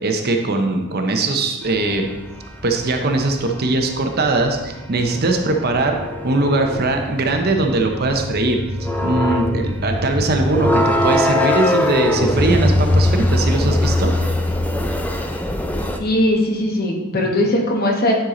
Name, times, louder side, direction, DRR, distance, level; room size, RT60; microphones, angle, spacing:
voice 1, 0.0-2.1 2.6-6.0 6.2-14.1, right 2 dB, 45° right, 4 dB, 0.7 m, -20 dB
sound 1, 1.7-16.0, left 1 dB, 5° left, 0.4 m, -22 dB
voice 2, 16.0-18.1, left 1 dB, 45° left, 0 dB, 1.2 m, -19 dB
10.0 x 4.6 x 3.8 m, 1.1 s
head